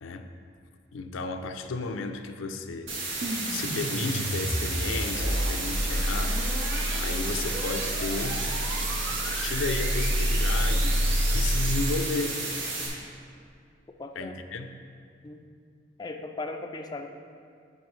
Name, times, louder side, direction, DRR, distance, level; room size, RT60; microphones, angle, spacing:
voice 1, 0.9-3.0 3.5-6.5 6.9-8.5 9.2-12.5 14.2-14.8, left 3 dB, 90° left, 7 dB, 0.5 m, -33 dB
sound 1, 2.9-12.9, right 2 dB, 80° right, 1.8 m, -33 dB
sound 2, 3.2-12.3, equal, 60° right, 0.8 m, -28 dB
voice 2, 14.0-14.3 15.2-15.4 16.0-17.1, left 2 dB, 20° left, 4 dB, 0.3 m, -37 dB
10.5 x 5.9 x 3.1 m, 2.2 s
head